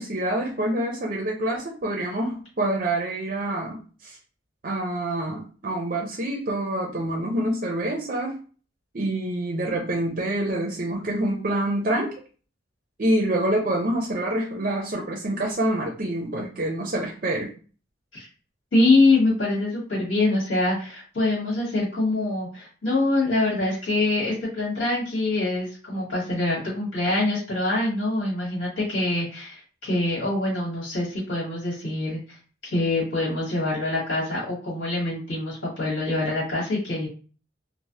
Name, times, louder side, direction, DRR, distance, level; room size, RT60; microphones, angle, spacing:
voice 1, 0.0-4.2 4.6-8.4 8.9-12.1 13.0-17.5, right 1 dB, 45° right, 0 dB, 0.5 m, -26 dB
voice 2, 18.7-32.4 32.7-37.1, left 2 dB, 80° left, -7 dB, 1.4 m, -24 dB
3.2 x 2.0 x 2.7 m, 0.38 s
head